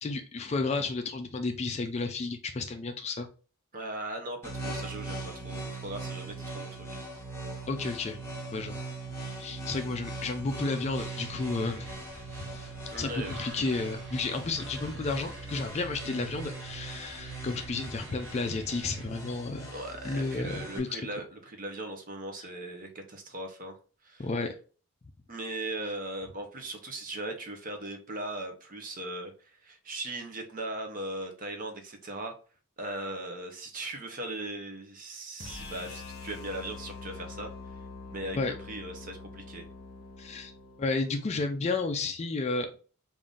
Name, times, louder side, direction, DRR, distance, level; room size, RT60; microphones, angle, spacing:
voice 1, 0.0-3.3 7.7-8.2 8.5-8.8 9.4-11.9 12.5-12.6 13.0-19.7 20.0-21.0 24.2-24.5 38.3-38.5 40.2-40.5 40.8-42.8, left 3 dB, 30° left, 6 dB, 0.3 m, -32 dB
voice 2, 3.7-7.0 12.9-13.4 19.7-23.8 24.0-24.3 25.3-32.3 32.8-37.5 38.1-39.7, right 1 dB, 35° right, 4 dB, 0.7 m, -39 dB
sound 1, 4.4-20.8, right 2 dB, 10° left, 1.0 m, -40 dB
sound 2, 11.0-19.1, right 2 dB, 55° right, 1.1 m, -49 dB
sound 3, 35.4-41.5, left 4 dB, 45° left, 1.0 m, -45 dB
3.6 x 2.5 x 3.7 m, 0.37 s
head